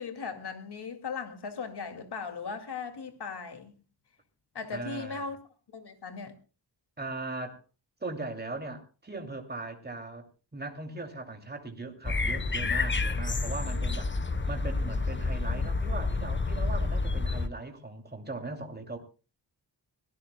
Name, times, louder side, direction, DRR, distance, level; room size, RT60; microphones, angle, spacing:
voice 1, 0.0-3.7 4.5-5.4 5.7-6.3 13.6-13.8, left 5 dB, 65° left, 2.4 m, -38 dB
voice 2, 4.7-5.3 7.0-7.6 8.0-14.1 14.5-19.0, right 3 dB, 20° right, 2.8 m, -39 dB
sound 1, 12.0-17.5, left 3 dB, 25° left, 1.0 m, -29 dB
24.5 x 18.5 x 2.3 m
wide cardioid pair, 135°, 44 cm